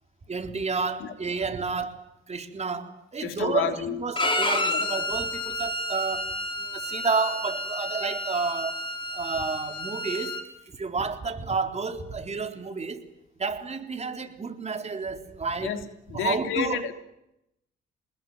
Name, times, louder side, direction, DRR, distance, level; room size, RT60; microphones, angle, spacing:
voice 1, 0.3-8.8 9.1-13.1 13.4-15.8 16.1-16.8, right 4 dB, 35° right, 4.0 m, -31 dB
voice 2, 3.2-4.0 4.7-4.8 15.6-15.8 16.1-16.9, left 9 dB, 90° left, 3.2 m, -30 dB
Bowed string instrument, 4.2-10.4, left 1 dB, 25° left, 5.4 m, -30 dB
28.0 x 20.5 x 9.5 m
cardioid pair, 90°, 20 cm